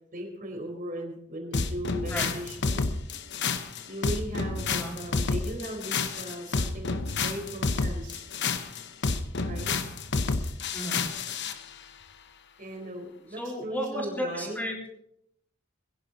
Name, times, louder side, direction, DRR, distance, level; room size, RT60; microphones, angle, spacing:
voice 1, 0.1-2.8 3.1-3.2 3.9-8.2 9.5-9.7 12.6-14.6, equal, 45° right, 1 dB, 4.3 m, -38 dB
sound 1, 1.5-11.6, left 4 dB, 60° left, 1.0 m, -29 dB
voice 2, 10.7-11.0 13.4-14.9, equal, 10° left, -1 dB, 3.8 m, -33 dB
21.5 x 10.5 x 4.0 m, 0.76 s
head